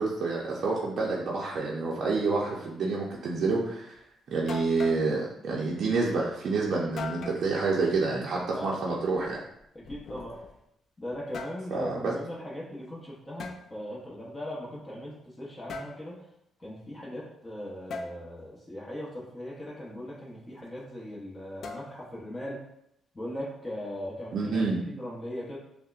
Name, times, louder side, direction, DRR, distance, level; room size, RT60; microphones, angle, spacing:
voice 1, 0.0-4.0 4.3-9.4 11.7-12.1 24.3-24.8, right 3 dB, 60° right, -4 dB, 0.6 m, -28 dB
sound 1, 4.0-4.1 4.5-5.1 7.0-7.5 9.1-10.6 11.1-11.7 13.4-13.6 15.7-16.0 17.9-18.1 21.6-22.2, left 3 dB, 65° left, 0.4 m, -39 dB
voice 2, 8.5-9.0 9.7-10.4 11.0-16.2 16.6-22.6 23.1-24.5 24.8-25.6, left 1 dB, 20° left, -5 dB, 0.9 m, -39 dB
5.4 x 2.1 x 2.4 m, 0.77 s
cardioid pair, 90°, 0 cm